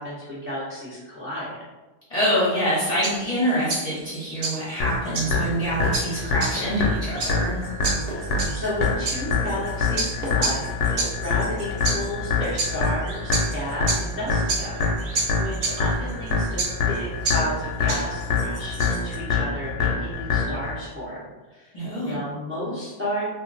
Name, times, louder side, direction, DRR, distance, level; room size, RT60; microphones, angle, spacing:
voice 1, 0.0-1.5 8.1-21.7 22.0-23.2, equal, 10° right, -10 dB, 0.8 m, -33 dB
voice 2, 2.1-7.6 21.7-22.1, equal, 35° left, -9 dB, 0.9 m, -25 dB
sound 1, 2.7-19.2, right 3 dB, 75° right, 0.9 m, -31 dB
sound 2, 4.8-20.8, left 4 dB, 85° left, 0.9 m, -25 dB
sound 3, 5.8-7.8 8.1-12.7, right 1 dB, 50° right, 0.5 m, -38 dB
2.4 x 2.1 x 3.9 m, 1.1 s
omnidirectional pair, 1.2 m